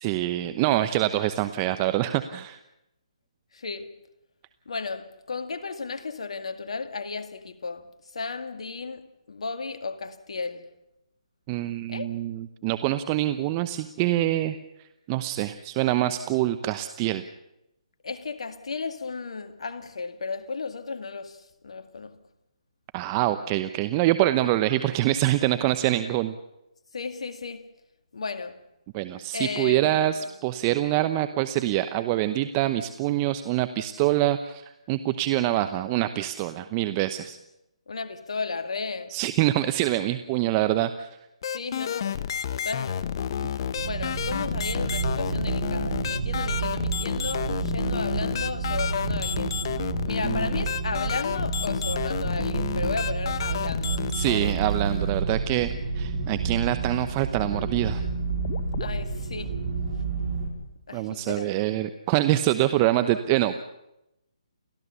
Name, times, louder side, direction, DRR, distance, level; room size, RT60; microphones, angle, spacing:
voice 1, 0.0-2.6 11.5-14.6 15.1-17.2 22.9-26.4 28.9-37.4 39.1-41.1 50.2-50.4 54.1-58.0 60.9-63.6, right 14 dB, 25° right, 0.9 m, -25 dB
voice 2, 3.5-3.9 4.7-7.9 8.1-10.7 11.9-12.2 18.0-22.2 26.9-27.7 28.1-28.6 29.3-30.3 37.9-39.2 41.5-43.1 43.8-49.6 50.0-54.1 58.8-59.6 60.9-61.5, left 4 dB, 70° left, 2.1 m, -34 dB
sound 1, 41.4-56.7 57.4-59.5, left 8 dB, 45° left, 1.0 m, -31 dB
sound 2, 43.8-60.5, right 4 dB, 55° right, 5.8 m, -30 dB
30.0 x 13.5 x 7.0 m
figure-of-eight pair, 145°, 3 cm